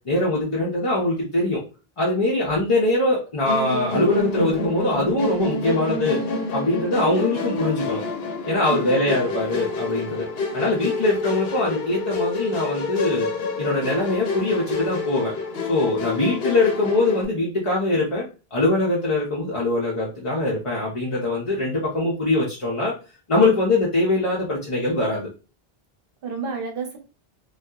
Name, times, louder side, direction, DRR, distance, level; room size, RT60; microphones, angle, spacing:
voice 1, 0.0-1.6 2.0-6.2 6.5-8.0 8.5-10.3 10.5-13.3 13.6-15.3 15.7-22.9 23.3-25.3, left 2 dB, 40° left, -5 dB, 0.6 m, -22 dB
Musical instrument, 3.5-17.3, left 3 dB, 75° left, 0.8 m, -28 dB
voice 2, 8.7-9.2 10.4-10.6 16.4-16.5 26.2-27.0, right 4 dB, 65° right, 3 dB, 0.9 m, -32 dB
2.7 x 2.3 x 2.2 m, 0.33 s
omnidirectional pair, 1.0 m